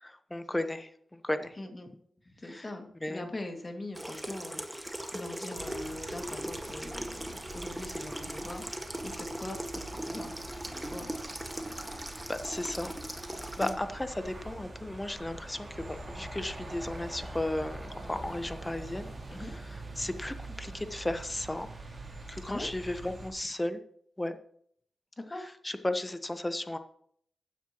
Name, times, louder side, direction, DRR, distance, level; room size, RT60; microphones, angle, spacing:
voice 1, 0.0-1.6 2.4-2.7 3.0-3.3 12.3-13.0 13.6-19.1 19.4-21.7 22.3-23.8 24.2-24.4 25.4-26.8, left 1 dB, 20° left, 10 dB, 1.2 m, -35 dB
voice 2, 1.6-1.9 2.3-10.4 10.7-11.1 13.6-13.8 19.3-19.5 22.5-22.7 25.2-25.4, left 2 dB, 35° left, 4 dB, 2.3 m, -42 dB
Water tap faucet / Sink (filling or washing), 3.9-13.7, right 1 dB, 10° right, 1.8 m, -39 dB
sound 1, 5.6-23.3, right 2 dB, 40° right, 4.8 m, -44 dB
15.5 x 10.0 x 3.1 m, 0.65 s
cardioid pair, 50°, 0 cm